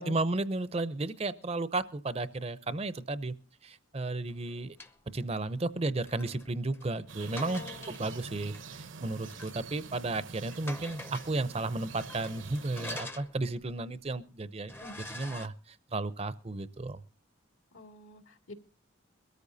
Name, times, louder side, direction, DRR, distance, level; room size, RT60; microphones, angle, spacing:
voice 1, 0.0-3.3 3.6-4.8 5.1-14.7 15.1-17.0, right 2 dB, 30° right, 14 dB, 0.6 m, -33 dB
sound 1, 4.2-5.0 5.9-8.2 8.5-8.6 9.2-9.7 10.0-10.1 10.5-11.4 11.9-13.8 14.2-14.3 14.7-15.5, left 1 dB, 10° left, 0.6 m, -45 dB
sound 2, 7.1-13.0, right 5 dB, 65° right, 0.8 m, -46 dB
voice 2, 7.4-8.2 14.8-14.9 17.7-18.5, left 2 dB, 80° left, 4 dB, 2.4 m, -47 dB
22.0 x 13.5 x 2.7 m, 0.36 s
head